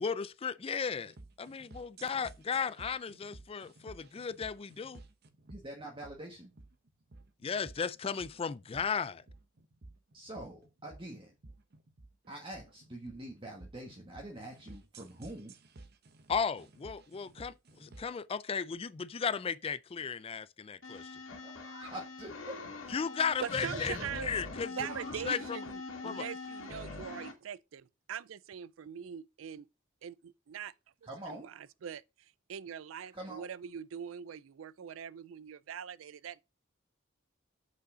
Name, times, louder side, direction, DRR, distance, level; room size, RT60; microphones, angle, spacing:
voice 1, 0.0-5.0 7.4-9.2 16.3-21.2 22.9-25.6 26.0-26.2, left 6 dB, 30° left, 0.4 m, -35 dB
sound 1, 0.9-18.2, right 2 dB, 55° right, 0.9 m, -54 dB
voice 2, 5.5-6.5 10.1-11.3 12.3-15.5 21.3-22.9 23.7-24.0 24.8-25.2 31.1-31.5 33.1-33.5, right 1 dB, 25° right, 1.3 m, -45 dB
sound 2, 20.8-27.3, left 2 dB, 80° left, 2.0 m, -43 dB
voice 3, 23.4-24.5 24.8-29.7 30.0-30.7 31.3-32.0 32.5-36.4, right 8 dB, 85° right, 0.4 m, -42 dB
6.3 x 5.4 x 5.0 m
head